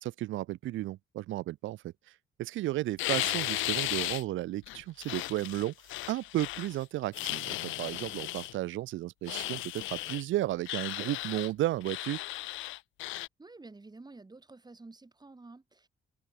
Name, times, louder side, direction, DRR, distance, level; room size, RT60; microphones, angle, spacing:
voice 1, 0.0-1.9 2.4-5.7 6.1-12.2, right 15 dB, 80° right, 0.7 m, -33 dB
sound 1, 3.0-4.2 4.7-6.8 7.1-8.5 9.3-10.2 10.7-11.5 11.8-13.3, left 17 dB, 80° left, 0.4 m, -35 dB
voice 2, 13.4-15.9, right 3 dB, 20° right, 7.1 m, -50 dB
open air
cardioid pair, 90°, 20 cm